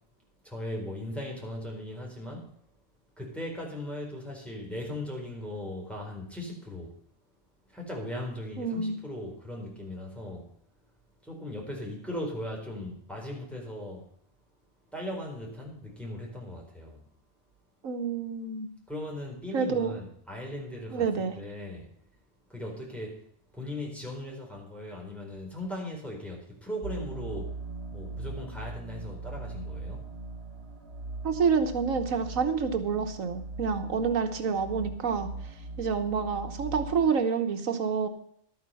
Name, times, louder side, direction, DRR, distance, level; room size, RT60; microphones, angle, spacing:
voice 1, 0.4-2.5 3.2-7.0 7.7-10.5 11.2-14.1 14.9-17.0 18.9-21.1 21.4-21.9 22.5-23.2 23.5-27.6 27.9-30.1, left 1 dB, ahead, -2 dB, 4.4 m, -38 dB
voice 2, 8.6-9.0 17.8-18.7 19.5-20.0 20.9-21.3 31.2-35.3 35.8-38.1, right 5 dB, 85° right, 6 dB, 1.5 m, -28 dB
sound 1, 26.8-37.1, right 3 dB, 55° right, 1.6 m, -40 dB
12.5 x 9.5 x 5.6 m, 0.66 s
omnidirectional pair, 1.4 m